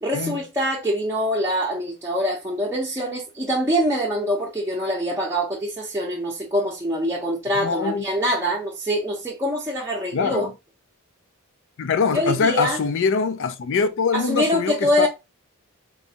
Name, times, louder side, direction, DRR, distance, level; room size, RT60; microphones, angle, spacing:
voice 1, 0.0-10.5 12.1-12.8 14.1-15.1, equal, 15° right, 0.6 m, -24 dB
voice 2, 7.5-8.0 10.1-10.5 11.8-15.1, left 5 dB, 60° left, 0.4 m, -23 dB
3.9 x 2.3 x 2.7 m
head